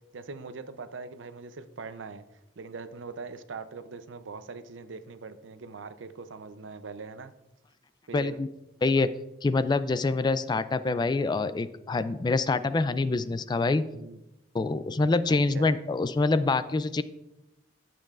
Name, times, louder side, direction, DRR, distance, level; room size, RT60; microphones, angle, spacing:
voice 1, 0.1-2.2 2.6-7.3 8.1-8.4 13.9-14.2 15.3-15.7, right 4 dB, 85° right, 11 dB, 0.6 m, -41 dB
voice 2, 8.1-8.5 8.8-9.1 9.4-13.8 14.5-17.0, left 3 dB, 25° left, 14 dB, 0.3 m, -25 dB
12.0 x 7.6 x 2.4 m, 0.92 s
head